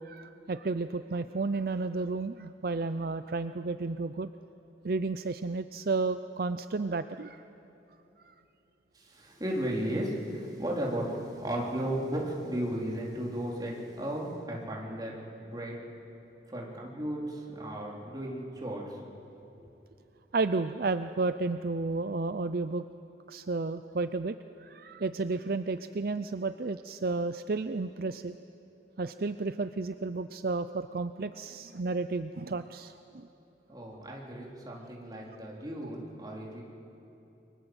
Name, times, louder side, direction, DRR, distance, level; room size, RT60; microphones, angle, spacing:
voice 1, 0.0-4.3 4.8-7.4 8.2-8.3 20.3-22.8 23.3-28.4 29.0-33.3, right 3 dB, 55° right, 11 dB, 0.5 m, -32 dB
voice 2, 8.9-15.8 16.5-19.0 19.6-19.7 33.7-36.6, right 1 dB, 25° right, -3 dB, 3.9 m, -35 dB
29.0 x 23.0 x 8.0 m, 2.9 s
head